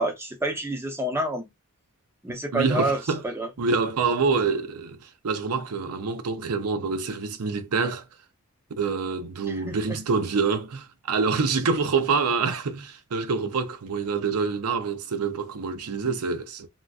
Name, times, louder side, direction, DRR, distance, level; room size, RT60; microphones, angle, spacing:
voice 1, 0.0-1.4 2.2-3.0 3.2-3.5 9.5-10.0, right 1 dB, 10° right, 0.7 m, -28 dB
voice 2, 2.5-3.2 3.6-8.1 8.8-16.7, right 4 dB, 75° right, 0.6 m, -26 dB
3.8 x 2.2 x 2.4 m
head